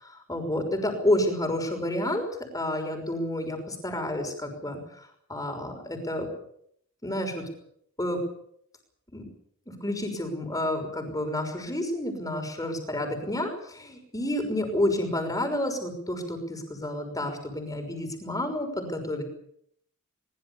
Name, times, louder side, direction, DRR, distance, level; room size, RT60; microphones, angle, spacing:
voice 1, 0.0-2.2 2.5-6.3 7.0-7.5 8.0-8.2 9.1-9.3 9.8-19.2, left 1 dB, 15° left, 6 dB, 5.9 m, -30 dB
23.0 x 21.5 x 7.1 m, 0.69 s
head